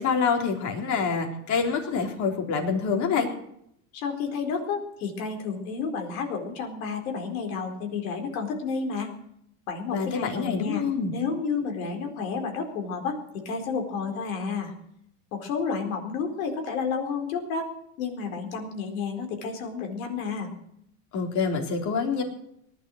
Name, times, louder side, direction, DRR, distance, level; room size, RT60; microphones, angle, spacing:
voice 1, 0.0-3.3 9.9-11.1 21.1-22.2, left 5 dB, 45° left, 3 dB, 3.8 m, -26 dB
voice 2, 3.9-9.1 9.7-10.8 11.1-14.7 15.3-17.7 18.0-20.5, left 5 dB, 80° left, 4 dB, 4.4 m, -31 dB
18.5 x 11.5 x 6.4 m, 0.74 s
supercardioid pair, 135°, 41 cm